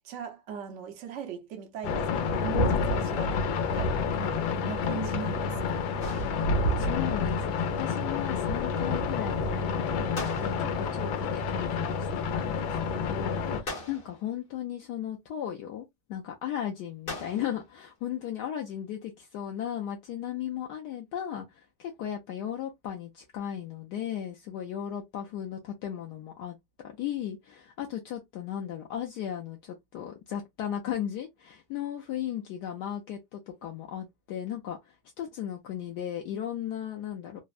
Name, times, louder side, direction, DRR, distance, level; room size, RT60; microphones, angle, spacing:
voice 1, 0.0-5.8, right 8 dB, 65° right, 0.7 m, -40 dB
sound 1, 1.8-13.6, left 4 dB, 90° left, 1.4 m, -29 dB
sound 2, 6.0-6.9 10.1-11.0 13.7-14.4 17.1-17.7, left 2 dB, 45° left, 0.8 m, -40 dB
voice 2, 6.8-26.6 26.8-37.4, left 10 dB, 75° left, 1.0 m, -36 dB
3.4 x 2.0 x 2.3 m
omnidirectional pair, 2.1 m